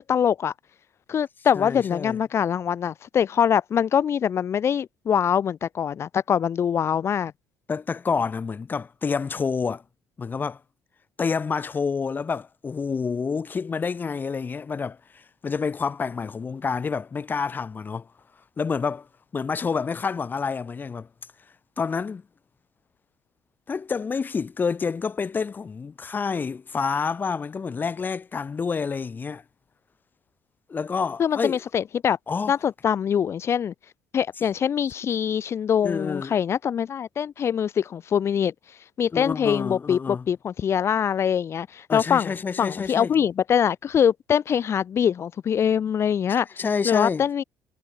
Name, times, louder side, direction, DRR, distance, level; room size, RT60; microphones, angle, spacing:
voice 1, 0.1-0.5 1.1-7.3 31.2-32.2 32.5-33.7 34.1-38.5 39.0-46.5 46.8-47.4, left 8 dB, 45° left, 2.6 m, -23 dB
voice 2, 1.5-2.2 7.7-9.8 10.2-10.6 11.2-18.1 18.6-19.1 19.3-21.1 21.8-22.2 23.7-29.4 30.7-31.6 32.3-32.5 35.8-36.3 39.1-40.3 41.9-43.2 46.3-47.3, left 5 dB, 30° left, 4.2 m, -28 dB
supercardioid pair, 90°, 6 cm